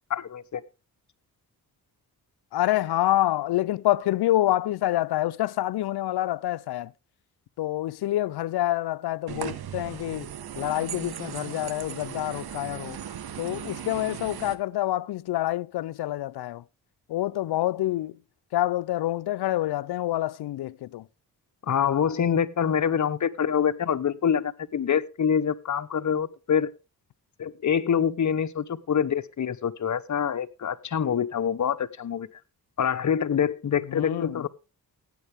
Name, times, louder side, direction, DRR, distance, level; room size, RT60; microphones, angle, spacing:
voice 1, 0.1-0.6 21.6-26.7 27.4-32.3 32.8-34.5, left 8 dB, 50° left, 0.9 m, -25 dB
voice 2, 2.5-6.9 7.6-13.0 13.4-16.6 17.1-18.2 18.5-21.1 33.9-34.4, left 14 dB, 80° left, 0.5 m, -27 dB
sound 1, 9.3-14.6, right 9 dB, 75° right, 1.1 m, -37 dB
15.5 x 9.0 x 3.4 m
cardioid pair, 85°, 38 cm